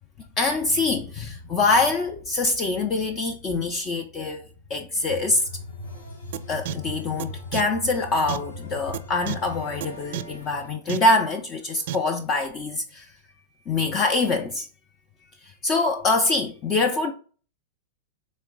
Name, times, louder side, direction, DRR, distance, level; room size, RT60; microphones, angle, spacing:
voice 1, 0.4-4.4 4.7-5.5 6.5-13.1 13.7-14.7 15.6-17.1, left 3 dB, 30° left, 0.5 m, -24 dB
sound 1, 5.1-10.7, left 2 dB, 80° left, 1.3 m, -39 dB
sound 2, 6.3-6.4 6.7-6.8 7.2-7.3 7.5-7.6 8.3-8.4 8.9-9.0 9.3-9.4 9.8-9.9 10.1-10.2 10.9-11.0 11.9-12.0, right 11 dB, 60° right, 0.3 m, -29 dB
3.7 x 3.2 x 3.5 m
hypercardioid pair, 100°, 0 cm